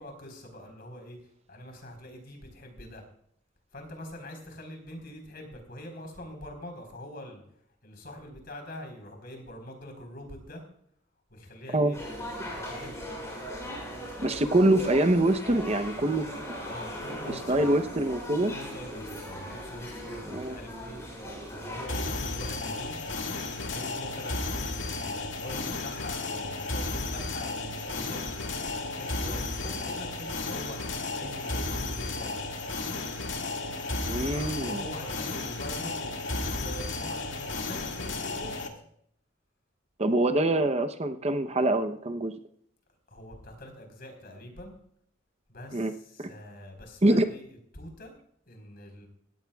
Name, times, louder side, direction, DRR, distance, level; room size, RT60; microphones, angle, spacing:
voice 1, 0.0-3.0 3.7-7.4 7.8-10.6 11.3-12.0 12.5-13.0 16.6-17.8 18.4-21.0 21.5-23.0 23.6-30.9 31.1-32.4 34.3-38.6 43.1-44.7 45.5-48.1 48.5-49.1, left 1 dB, 50° left, 4 dB, 4.2 m, -44 dB
sound 1, 11.9-21.9, equal, 15° left, 5.5 m, -39 dB
voice 2, 14.2-16.3 17.5-18.5 20.3-20.6 34.1-34.8 40.0-42.3 45.7-45.9 46.2-46.3 47.0-47.2, right 1 dB, 35° right, 8 dB, 0.8 m, -24 dB
sound 2, 21.9-38.7, left 3 dB, 75° left, 2.1 m, -33 dB
17.5 x 14.5 x 2.4 m, 0.67 s
head